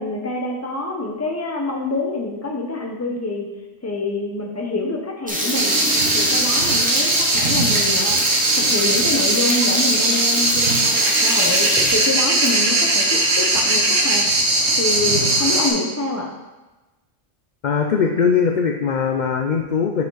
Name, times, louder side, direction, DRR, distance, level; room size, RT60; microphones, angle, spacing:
voice 1, 0.0-3.5 3.8-5.7 6.1-8.2 8.6-14.2 14.8-16.3, left 2 dB, 15° left, 1 dB, 0.7 m, -26 dB
sound 1, 5.3-12.8 13.1-13.2 13.5-13.6 14.2-14.3 14.5-15.6, equal, 5° right, 1.0 m, -26 dB
sound 2, 5.5-15.7, right 2 dB, 60° right, 1.3 m, -19 dB
voice 2, 17.6-20.0, left 6 dB, 55° left, 3 dB, 0.5 m, -20 dB
7.1 x 5.0 x 3.9 m, 1.1 s
omnidirectional pair, 1.3 m